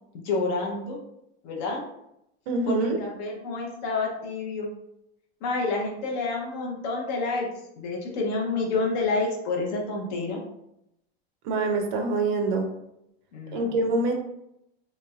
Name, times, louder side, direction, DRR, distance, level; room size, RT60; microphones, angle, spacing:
voice 1, 0.2-1.0 1.4-1.8 2.7-4.7 5.4-7.5 7.8-10.4 13.3-13.7, left 3 dB, 45° left, 0 dB, 0.7 m, -29 dB
voice 2, 2.5-3.0 11.4-12.7 13.5-14.1, right 3 dB, 50° right, 3 dB, 0.6 m, -25 dB
3.2 x 3.1 x 2.3 m, 0.80 s
supercardioid pair, 170°, 32 cm